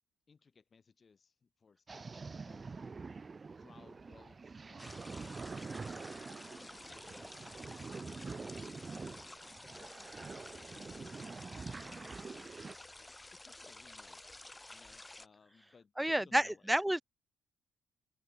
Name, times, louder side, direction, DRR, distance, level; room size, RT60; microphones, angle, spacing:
voice 1, 0.3-8.8 9.6-11.3 12.9-16.7, left 5 dB, 40° left, 6.7 m, -64 dB
sound 1, 1.9-12.8, right 4 dB, 35° right, 1.2 m, -46 dB
sound 2, 4.8-15.3, left 2 dB, 15° left, 7.6 m, -52 dB
voice 2, 16.0-17.0, right 1 dB, 5° right, 0.8 m, -30 dB
open air
hypercardioid pair, 45°, 0 cm